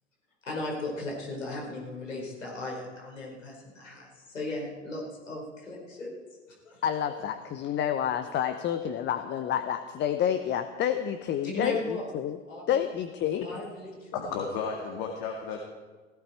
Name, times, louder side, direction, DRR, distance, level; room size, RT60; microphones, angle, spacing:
voice 1, 0.4-6.2 6.6-6.8 11.4-12.1 12.5-12.8 13.4-14.4, left 2 dB, 80° left, -3 dB, 5.1 m, -37 dB
voice 2, 6.8-12.4 12.7-13.4, left 9 dB, 30° left, 10 dB, 0.8 m, -29 dB
voice 3, 14.1-15.6, left 5 dB, 50° left, 2 dB, 2.1 m, -33 dB
16.5 x 16.0 x 4.5 m, 1.4 s
figure-of-eight pair, 85°, 37 cm